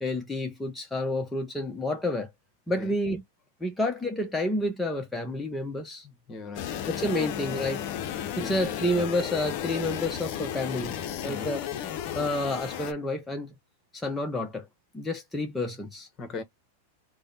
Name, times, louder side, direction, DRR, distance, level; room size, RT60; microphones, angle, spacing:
voice 1, 0.0-2.3 2.7-3.2 3.6-6.1 6.9-7.8 8.4-10.9 11.2-11.6 12.1-13.5 13.9-14.7 14.9-16.1, left 1 dB, 10° left, 0.8 m, -29 dB
voice 2, 6.0-6.7 7.2-7.3 8.4-8.7 11.2-11.5 16.2-16.4, left 3 dB, 30° left, 1.2 m, -39 dB
sound 1, 6.6-12.9, left 10 dB, 50° left, 0.6 m, -34 dB
3.3 x 2.2 x 4.0 m
hypercardioid pair, 100°, 0 cm